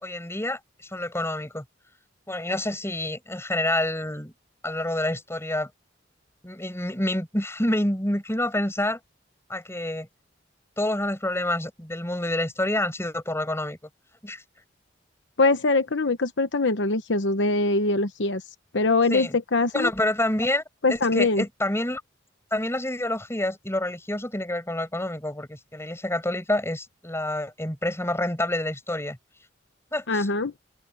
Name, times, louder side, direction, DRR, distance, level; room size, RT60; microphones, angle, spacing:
voice 1, 0.0-1.6 2.3-4.3 4.6-5.7 6.4-9.0 9.5-10.1 10.8-13.8 14.2-14.4 19.1-19.4 19.7-20.6 20.9-22.0 22.5-29.2 29.9-30.3, left 1 dB, 15° left, 6.5 m, -28 dB
voice 2, 15.4-18.4 18.7-19.9 20.8-21.4 30.1-30.5, left 3 dB, 75° left, 1.0 m, -23 dB
head